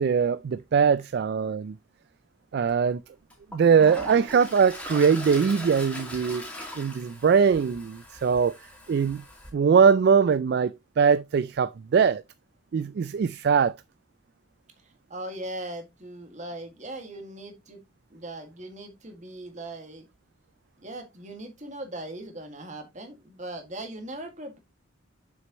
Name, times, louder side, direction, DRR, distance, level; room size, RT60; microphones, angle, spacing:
voice 1, 0.0-1.8 2.5-3.0 3.5-6.5 6.7-8.6 8.9-9.2 9.5-12.2 12.7-13.7, right 6 dB, 55° right, 0.3 m, -22 dB
Toilet flush, 2.7-2.8 3.3-9.5, left 1 dB, 5° left, 2.3 m, -40 dB
voice 2, 14.8-17.8 18.1-20.1 20.8-24.6, right 1 dB, 40° right, 1.9 m, -39 dB
7.5 x 6.3 x 3.0 m
head